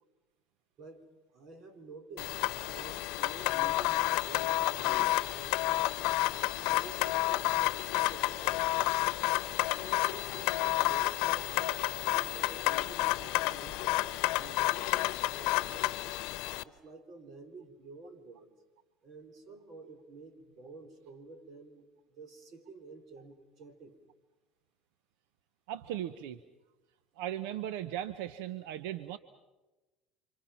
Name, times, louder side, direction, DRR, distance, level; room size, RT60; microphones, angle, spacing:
voice 1, 0.8-5.9 6.4-8.9 9.7-16.0 16.6-18.5 19.0-24.0, right 3 dB, 50° right, 7 dB, 3.9 m, -51 dB
sound 1, 2.2-16.6, left 19 dB, 70° left, 0.9 m, -30 dB
voice 2, 25.7-26.4 27.2-29.2, right 11 dB, 85° right, 13 dB, 0.9 m, -37 dB
30.0 x 26.0 x 5.9 m, 1.1 s
supercardioid pair, 115°, 0 cm